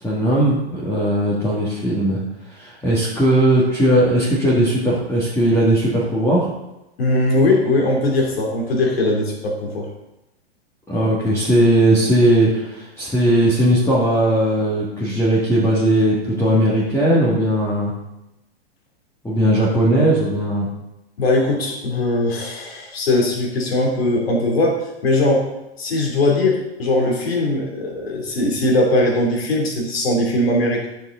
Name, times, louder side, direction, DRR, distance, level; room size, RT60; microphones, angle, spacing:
voice 1, 0.0-2.2 2.5-6.5 10.9-17.9 19.2-20.7, right 1 dB, 10° left, -8 dB, 2.1 m, -18 dB
voice 2, 7.0-9.9 21.2-25.5 25.8-30.9, left 2 dB, 70° left, -1 dB, 3.0 m, -20 dB
10.5 x 6.6 x 3.9 m, 0.93 s
hypercardioid pair, 110°, 31 cm